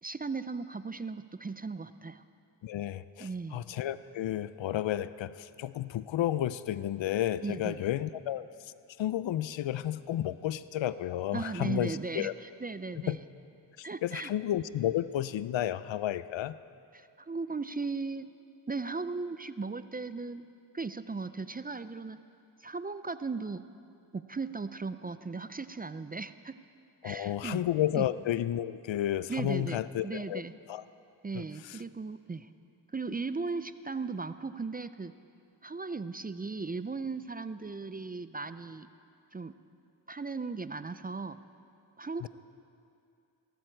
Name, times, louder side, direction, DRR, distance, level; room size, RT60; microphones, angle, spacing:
voice 1, 0.0-2.2 3.2-3.6 7.4-7.8 11.3-13.2 13.8-14.3 16.9-18.3 18.7-20.4 20.7-22.2 22.6-23.6 24.1-26.5 27.0-27.6 27.9-28.1 29.3-30.5 31.2-32.5 32.9-35.1 35.6-38.9 39.3-39.5 40.1-41.4 42.0-42.3, right 4 dB, 20° right, 13 dB, 0.4 m, -37 dB
voice 2, 2.6-8.5 9.0-12.3 13.1-13.2 14.0-16.6 27.0-30.4 30.7-30.8 31.3-31.8 42.2-42.3, left 12 dB, 75° left, 16 dB, 0.6 m, -32 dB
18.0 x 14.0 x 4.6 m, 2.5 s
cardioid pair, 45°, 46 cm